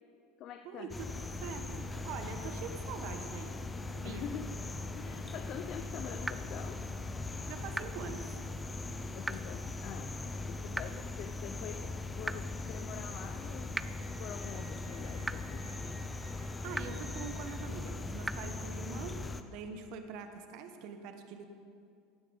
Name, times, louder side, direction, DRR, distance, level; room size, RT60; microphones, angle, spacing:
voice 1, 0.4-0.9 4.0-4.6 4.9-6.8 9.1-10.2 10.5-13.9 14.2-15.8, left 9 dB, 55° left, 7 dB, 0.6 m, -45 dB
sound 1, 0.9-19.4, left 2 dB, 20° left, 0.7 m, -40 dB
voice 2, 1.4-3.6 3.9-4.2 7.5-8.4 16.6-19.2 19.5-21.5, right 6 dB, 65° right, 7 dB, 1.1 m, -44 dB
sound 2, 6.2-6.3 7.7-7.8 9.2-9.3 10.7-10.8 12.2-12.3 13.7-13.8 15.2-15.3 16.7-16.8 18.2-18.3, right 2 dB, 10° right, 0.4 m, -34 dB
Wind instrument woodwind instrument, 11.9-17.7, right 2 dB, 30° right, 1.5 m, -59 dB
15.5 x 9.9 x 4.0 m, 2.4 s
hypercardioid pair, 90°, 0 cm